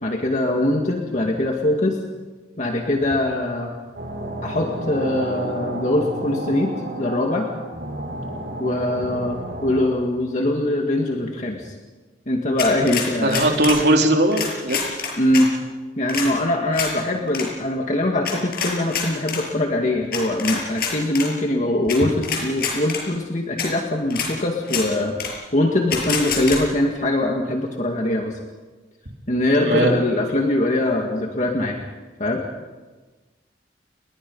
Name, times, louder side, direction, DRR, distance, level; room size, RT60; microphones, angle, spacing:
voice 1, 0.0-2.0 2.6-3.7 4.4-7.5 8.6-11.7 12.3-13.4 15.2-15.5 16.0-28.4 29.3-31.8 32.2-32.4, left 1 dB, 45° left, 1 dB, 2.2 m, -22 dB
sound 1, 3.9-9.8, right 1 dB, 90° right, 7.9 m, -31 dB
sound 2, 12.6-13.8 14.3-15.4 16.1-16.3 16.7-16.9 17.3-17.5 18.2-19.4 20.1-21.3 21.9-22.0 22.2-23.0 23.6-23.7 24.1-24.3 24.6-24.8 25.2-25.3 25.9-26.6, left 6 dB, 60° left, 6.7 m, -26 dB
voice 2, 13.2-14.8 29.6-29.9, right 1 dB, 65° right, 2 dB, 3.6 m, -19 dB
29.5 x 22.0 x 5.6 m, 1.3 s
head